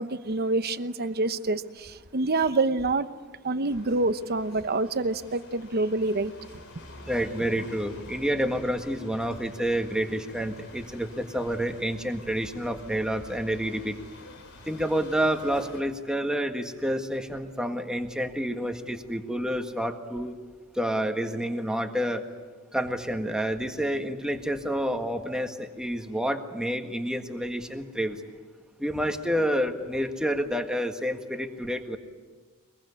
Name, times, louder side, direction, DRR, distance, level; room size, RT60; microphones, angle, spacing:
voice 1, 0.0-3.1 3.4-6.3, right 2 dB, 50° right, 1.0 m, -27 dB
sound 1, 3.7-15.8, left 2 dB, 75° left, 4.0 m, -48 dB
voice 2, 7.1-14.0 14.7-20.4 20.7-22.2 22.7-28.2 28.8-32.0, equal, 5° right, 1.7 m, -29 dB
22.5 x 22.0 x 9.8 m
head